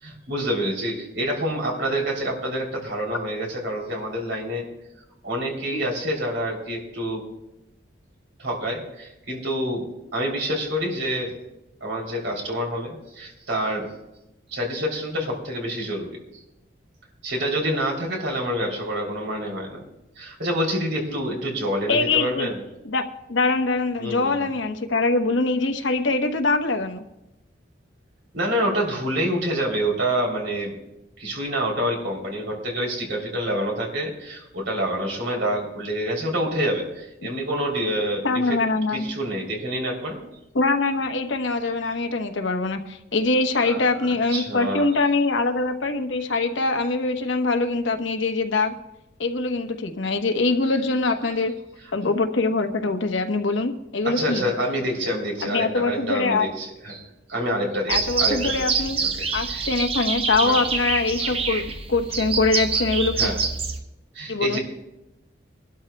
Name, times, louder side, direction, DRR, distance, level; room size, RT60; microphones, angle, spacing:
voice 1, 0.0-4.7 5.2-7.2 8.4-9.9 10.1-11.3 11.8-13.9 14.5-16.4 17.2-19.8 20.2-22.6 24.0-24.5 28.3-30.8 31.2-38.6 38.9-40.2 43.6-44.9 54.0-59.7 60.4-60.6 63.2-63.4 64.1-64.6, equal, 70° right, -1 dB, 3.1 m, -27 dB
voice 2, 21.9-22.5 22.8-23.0 23.3-27.0 38.2-39.0 40.5-48.7 49.2-51.5 51.9-54.5 55.4-56.5 57.9-59.0 59.3-61.6 61.9-63.3 64.3-64.6, left 3 dB, 80° left, 5 dB, 1.0 m, -23 dB
sound 1, 57.9-63.8, right 5 dB, 30° right, 0.7 m, -26 dB
23.5 x 12.5 x 2.2 m, 0.93 s
head